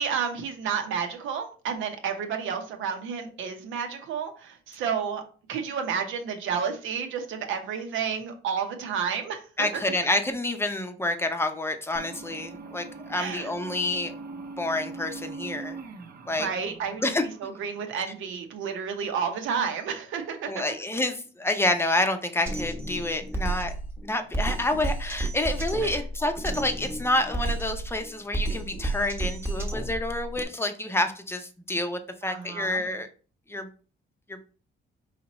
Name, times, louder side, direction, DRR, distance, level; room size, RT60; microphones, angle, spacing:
voice 1, 0.0-5.2 5.5-9.8 13.2-13.5 16.4-17.0 17.4-20.6 32.2-32.8, right 6 dB, 85° right, 5 dB, 0.8 m, -31 dB
voice 2, 9.6-14.1 14.6-15.8 16.3-16.5 17.0-17.3 20.5-23.7 24.0-33.1 33.5-33.7 34.3-34.4, left 1 dB, 10° left, 7 dB, 0.6 m, -28 dB
sound 1, 12.0-18.3, right 3 dB, 50° right, 0.7 m, -42 dB
Drum kit, 22.5-30.4, right 2 dB, 10° right, 0.9 m, -32 dB
4.9 x 2.8 x 3.0 m, 0.39 s
cardioid pair, 90°, 20 cm